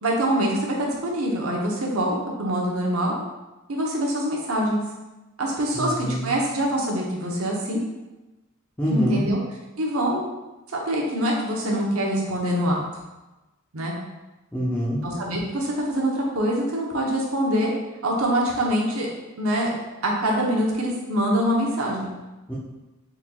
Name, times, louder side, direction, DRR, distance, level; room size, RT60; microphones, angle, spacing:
voice 1, 0.0-3.2 3.7-4.8 5.4-7.8 8.9-9.4 9.8-10.3 10.7-12.8 13.7-13.9 15.0-17.7 18.0-19.1 19.4-19.7 20.0-22.1, equal, 80° right, -2 dB, 0.9 m, -24 dB
voice 2, 5.7-6.3 8.8-9.3 14.5-15.0 22.5-22.6, right 1 dB, 10° left, -7 dB, 0.6 m, -25 dB
4.3 x 4.0 x 2.3 m, 1.1 s
head